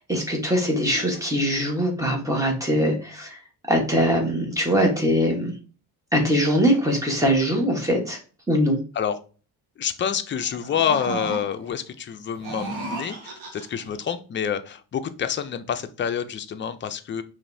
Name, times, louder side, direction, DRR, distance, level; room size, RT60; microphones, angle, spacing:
voice 1, 0.0-3.4 3.7-5.6 6.1-8.2 8.5-8.8, equal, 10° right, 1 dB, 1.1 m, -22 dB
voice 2, 9.8-17.2, left 8 dB, 30° left, 8 dB, 0.4 m, -28 dB
sound 1, 10.4-11.7 12.3-13.9, right 3 dB, 75° right, 1.4 m, -34 dB
5.1 x 3.0 x 2.6 m, 0.37 s
cardioid pair, 145°, 38 cm